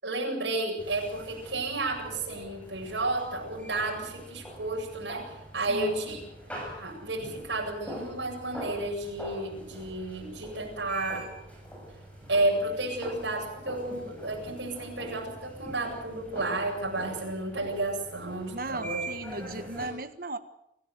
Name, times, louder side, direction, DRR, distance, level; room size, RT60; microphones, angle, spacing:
voice 1, 0.0-6.2 6.7-11.3 12.3-19.0 19.4-19.5, right 2 dB, 70° right, -1 dB, 7.9 m, -32 dB
sound 1, 0.8-19.9, right 1 dB, 5° left, 7.2 m, -43 dB
voice 2, 5.7-6.0 18.5-20.4, right 2 dB, 50° right, 9 dB, 1.5 m, -36 dB
27.5 x 15.0 x 8.0 m, 0.81 s
head